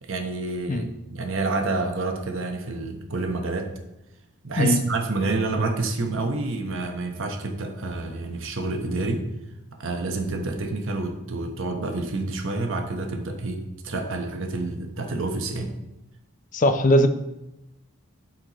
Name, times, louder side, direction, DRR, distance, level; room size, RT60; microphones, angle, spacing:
voice 1, 0.0-3.7 4.4-9.3 9.8-15.7, right 3 dB, 60° right, 3 dB, 1.0 m, -28 dB
voice 2, 16.5-17.1, left 1 dB, 35° left, 9 dB, 0.5 m, -19 dB
12.0 x 4.4 x 3.0 m, 0.91 s
head